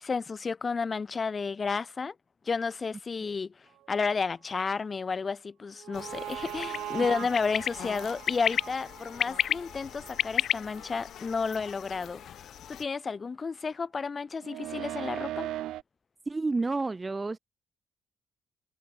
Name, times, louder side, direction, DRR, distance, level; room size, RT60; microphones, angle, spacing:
voice 1, 0.0-2.1 2.4-15.5, left 5 dB, 35° left, 0.8 m, -32 dB
sound 1, 5.8-11.0 11.5-11.6 14.4-15.8, right 14 dB, 85° right, 0.9 m, -40 dB
sound 2, 5.9-12.8, left 10 dB, 70° left, 0.4 m, -34 dB
voice 2, 16.3-17.4, right 3 dB, 25° right, 0.8 m, -30 dB
cardioid pair, 90°, 0 cm